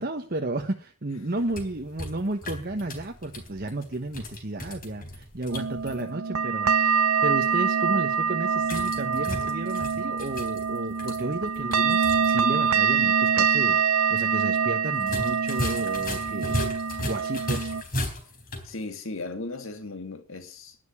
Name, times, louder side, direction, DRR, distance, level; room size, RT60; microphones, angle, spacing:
voice 1, 0.0-13.8 14.1-16.6 17.1-17.7, right 2 dB, 45° right, 1.2 m, -32 dB
sound 1, 1.3-6.0 8.6-12.4 12.7-12.8 15.0-18.7, left 1 dB, 40° left, 3.7 m, -36 dB
sound 2, 5.5-17.8, right 6 dB, 80° right, 1.0 m, -25 dB
voice 2, 18.6-20.8, left 2 dB, 60° left, 2.2 m, -37 dB
11.5 x 10.5 x 8.6 m
head